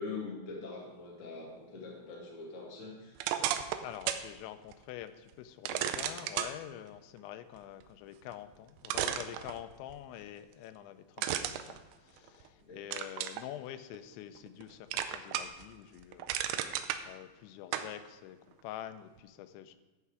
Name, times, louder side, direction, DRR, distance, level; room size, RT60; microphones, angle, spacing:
voice 1, 0.0-3.4 12.7-12.8, left 4 dB, 65° left, 0.7 m, -43 dB
sound 1, 3.2-4.3 4.7-4.8 5.7-6.5 8.3-8.4 8.9-9.9 11.2-12.5 12.9-13.4 13.9-14.6 14.9-15.6 16.0-17.0 17.7-17.9, right 11 dB, 80° right, 2.6 m, -34 dB
voice 2, 3.8-19.8, left 12 dB, 85° left, 2.9 m, -46 dB
14.0 x 5.7 x 4.8 m
omnidirectional pair, 5.2 m